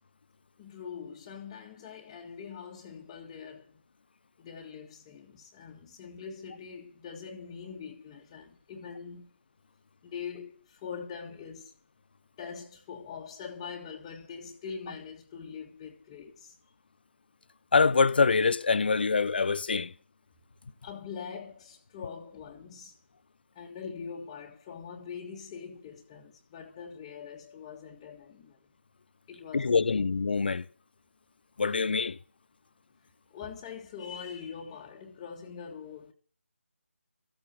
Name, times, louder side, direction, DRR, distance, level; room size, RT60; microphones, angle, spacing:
voice 1, 0.6-3.8 4.4-9.3 10.0-11.7 12.4-16.6 20.8-23.0 23.6-28.6 29.3-30.0 33.3-36.1, left 6 dB, 15° left, 1.7 m, -43 dB
voice 2, 17.7-19.9 29.5-30.7 31.6-32.2, left 4 dB, 45° left, 0.9 m, -25 dB
14.5 x 8.8 x 7.6 m
figure-of-eight pair, 160°, 7 cm